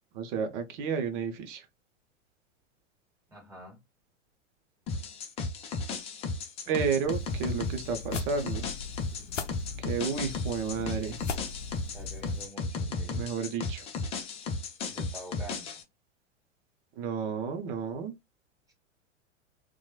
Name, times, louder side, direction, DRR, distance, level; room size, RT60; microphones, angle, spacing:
voice 1, 0.1-1.6 6.7-8.7 9.8-11.2 12.8-13.8 17.0-18.1, right 6 dB, 45° right, 0.7 m, -32 dB
voice 2, 3.3-3.8 6.6-7.5 11.9-13.3 14.9-15.8, right 1 dB, 10° right, 1.3 m, -48 dB
sound 1, 4.9-15.8, left 3 dB, 20° left, 0.4 m, -35 dB
sound 2, 7.0-12.5, left 5 dB, 85° left, 0.5 m, -40 dB
2.9 x 2.2 x 2.3 m
figure-of-eight pair, 95°, 36 cm